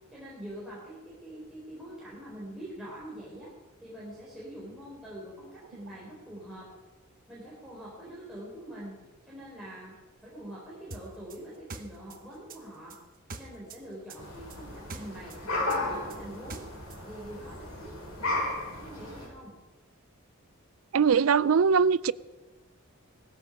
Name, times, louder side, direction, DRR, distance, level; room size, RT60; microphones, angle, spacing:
voice 1, 0.1-3.5 3.8-6.7 7.3-9.0 9.3-9.9 10.2-13.0 13.3-15.4 15.6-16.6 17.0-18.4 18.7-19.5, right 1 dB, ahead, 4.0 m, -44 dB
sound 1, 10.9-13.8 14.1-17.0, right 3 dB, 40° right, 1.3 m, -44 dB
sound 2, 14.2-19.3, left 2 dB, 90° left, 7.4 m, -34 dB
voice 2, 20.9-22.1, right 6 dB, 70° right, 0.4 m, -21 dB
18.5 x 14.5 x 5.2 m
head